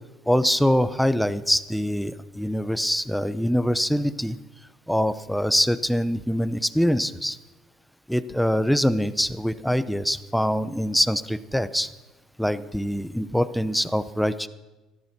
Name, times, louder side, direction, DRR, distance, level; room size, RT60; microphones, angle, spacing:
voice 1, 0.3-4.4 4.9-7.4 8.1-11.9 12.4-14.5, equal, ahead, 13 dB, 0.7 m, -24 dB
13.5 x 12.5 x 6.0 m, 1.1 s
supercardioid pair, 100°, 0 cm